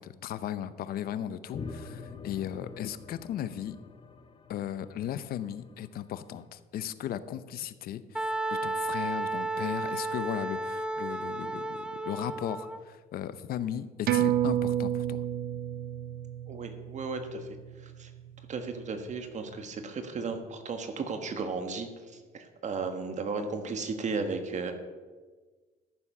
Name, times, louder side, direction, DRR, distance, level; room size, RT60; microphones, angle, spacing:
voice 1, 0.0-3.8 4.5-15.3, left 10 dB, 65° left, 14 dB, 0.7 m, -36 dB
sound 1, 1.5-6.2, left 5 dB, 30° left, 0.8 m, -45 dB
Wind instrument woodwind instrument, 8.1-12.8, right 2 dB, 5° right, 0.6 m, -33 dB
sound 2, 14.1-19.0 19.4-19.5, right 11 dB, 65° right, 0.8 m, -31 dB
voice 2, 16.5-17.5 17.8-18.1 18.5-21.9 22.3-24.7, right 4 dB, 45° right, 7 dB, 1.4 m, -34 dB
13.5 x 7.3 x 5.5 m, 1.4 s
cardioid pair, 110°, 17 cm